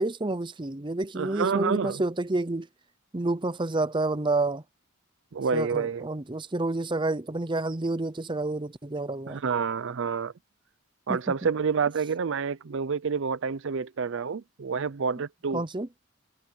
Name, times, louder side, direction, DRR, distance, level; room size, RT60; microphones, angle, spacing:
voice 1, 0.0-2.7 3.1-4.6 5.5-9.4 11.1-11.5 15.5-15.9, right 2 dB, 20° right, 0.6 m, -29 dB
voice 2, 1.2-2.0 5.3-6.1 9.3-10.3 11.1-15.6, right 6 dB, 60° right, 0.5 m, -28 dB
head